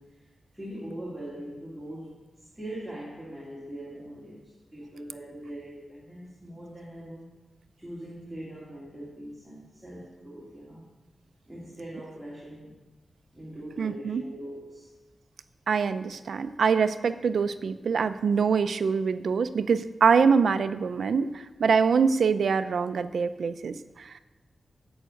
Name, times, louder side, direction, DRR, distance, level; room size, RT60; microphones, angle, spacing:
voice 1, 0.0-7.4 7.8-10.9 11.5-12.8 13.3-15.0, right 1 dB, ahead, -7 dB, 2.7 m, -42 dB
voice 2, 13.8-14.2 15.7-24.2, right 5 dB, 75° right, 11 dB, 0.6 m, -24 dB
11.0 x 8.0 x 6.5 m, 1.2 s
wide cardioid pair, 170°, 0 cm